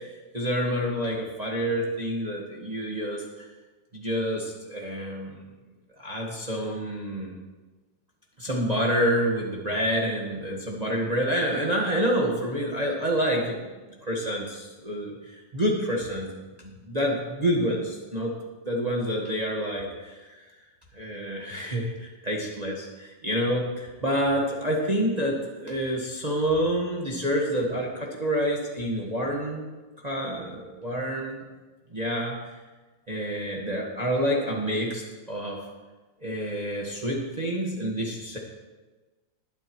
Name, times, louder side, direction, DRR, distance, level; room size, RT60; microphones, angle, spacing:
voice 1, 0.0-3.2 3.9-5.4 6.0-7.4 8.4-13.6 14.0-16.3 16.6-18.4 18.6-20.5 20.9-29.7 30.0-31.4 31.9-32.4 33.1-35.6 36.2-38.4, equal, 25° right, -2 dB, 1.3 m, -28 dB
19.5 x 9.9 x 3.1 m, 1.2 s
omnidirectional pair, 2.1 m